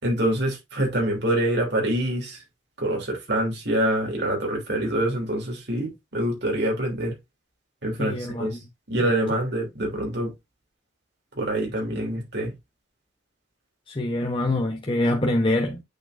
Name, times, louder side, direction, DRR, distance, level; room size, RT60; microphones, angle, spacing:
voice 1, 0.0-2.4 2.8-7.2 7.8-8.6 8.9-10.3 11.4-12.5, right 1 dB, 55° right, 3.2 m, -25 dB
voice 2, 8.0-8.5 9.0-9.4 13.9-15.8, left 1 dB, 25° left, 0.9 m, -25 dB
8.5 x 4.4 x 2.6 m
head